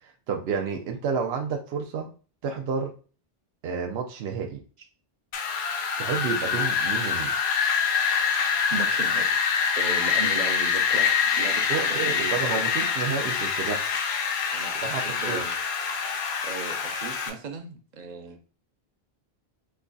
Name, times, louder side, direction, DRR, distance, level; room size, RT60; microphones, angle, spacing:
voice 1, 0.0-2.1 2.4-2.9 3.6-4.6 6.0-7.3 11.7-13.9 14.8-15.4, right 6 dB, 80° right, 2 dB, 0.8 m, -30 dB
Wind, 5.3-17.3, left 6 dB, 85° left, 0.9 m, -25 dB
voice 2, 8.5-9.4 9.8-11.1 11.3-12.6 14.5-15.6 16.4-18.4, right 5 dB, 50° right, 6 dB, 0.7 m, -36 dB
3.1 x 2.3 x 3.8 m, 0.37 s
omnidirectional pair, 1.0 m